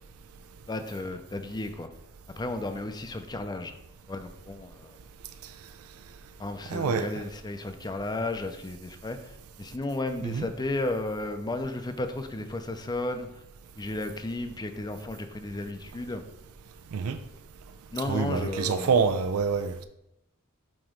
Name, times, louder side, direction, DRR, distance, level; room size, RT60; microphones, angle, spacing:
voice 1, 0.7-1.9 2.4-3.8 4.1-5.0 6.4-13.4 13.8-16.2 17.9-18.9, left 2 dB, 20° left, 0.5 m, -33 dB
voice 2, 6.7-7.1 10.3-10.5 16.9-17.2 18.1-19.9, right 5 dB, 80° right, 0.4 m, -26 dB
7.4 x 3.0 x 5.0 m
head